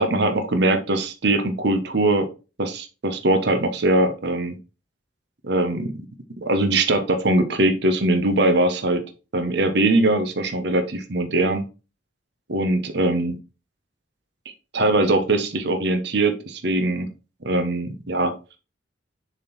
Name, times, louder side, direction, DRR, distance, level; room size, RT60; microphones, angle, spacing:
voice 1, 0.0-2.3 2.6-4.6 5.4-5.9 6.4-9.0 9.3-11.6 12.5-13.4 14.7-17.1 17.4-18.3, right 2 dB, 60° right, 7 dB, 0.9 m, -21 dB
7.0 x 3.7 x 4.2 m, 0.31 s
head